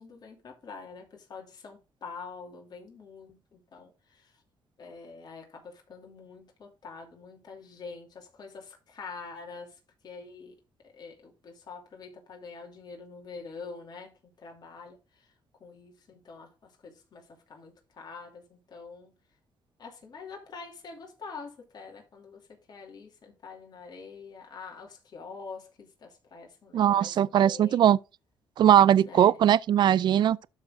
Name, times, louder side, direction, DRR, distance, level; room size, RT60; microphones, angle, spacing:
voice 1, 0.0-4.4 4.8-15.3 15.6-19.1 19.8-27.9 29.0-29.4, left 4 dB, 50° left, 2.8 m, -46 dB
voice 2, 26.7-28.0 28.6-30.5, right 10 dB, 55° right, 0.4 m, -20 dB
12.5 x 4.2 x 3.6 m
cardioid pair, 95°, 9 cm